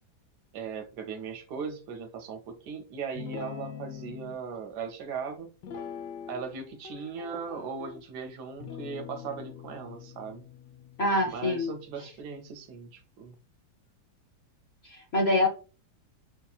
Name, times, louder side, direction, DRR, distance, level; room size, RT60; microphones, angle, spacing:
voice 1, 0.5-5.5 6.3-10.5 11.2-13.4, right 5 dB, 70° right, 6 dB, 1.2 m, -38 dB
Guitar, 3.2-4.4 5.6-6.6 6.8-8.0 8.6-12.1, left 7 dB, 75° left, 1.2 m, -43 dB
voice 2, 11.0-11.7 14.8-15.5, left 2 dB, 50° left, 1 dB, 0.8 m, -25 dB
6.1 x 2.7 x 2.3 m, 0.34 s
omnidirectional pair, 1.9 m